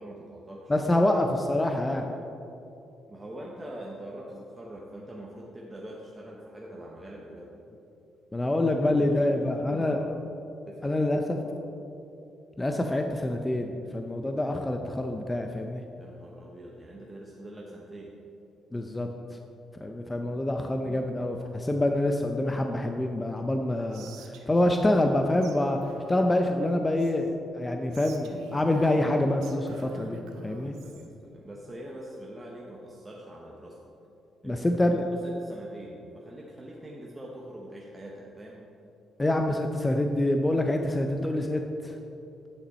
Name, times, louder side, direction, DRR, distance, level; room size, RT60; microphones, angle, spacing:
voice 1, 0.0-0.9 3.1-7.5 8.4-10.2 10.7-11.0 11.3-11.6 16.0-18.1 30.5-33.8 34.4-34.7 34.9-38.6, right 1 dB, 20° right, -3 dB, 0.9 m, -44 dB
voice 2, 0.7-2.1 8.3-10.0 10.8-11.4 12.6-15.8 18.7-19.1 19.8-25.8 26.1-30.8 34.4-35.1 39.2-42.0, left 1 dB, 15° left, 4 dB, 0.5 m, -26 dB
Whispering, 23.9-25.1 25.4-25.6 25.8-27.3 27.9-31.1, right 4 dB, 90° right, 0.7 m, -48 dB
9.8 x 6.0 x 4.2 m, 2.8 s
cardioid pair, 90°, 0 cm